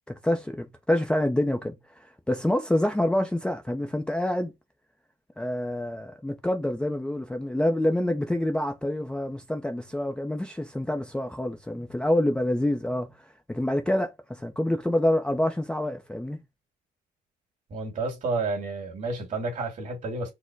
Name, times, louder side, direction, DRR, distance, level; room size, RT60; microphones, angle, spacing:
voice 1, 0.1-4.5 5.4-13.1 13.5-16.4, left 1 dB, 5° left, 0.5 m, -27 dB
voice 2, 17.7-20.3, right 3 dB, 45° right, 2.0 m, -30 dB
4.3 x 2.1 x 4.6 m
cardioid pair, 110°, 17 cm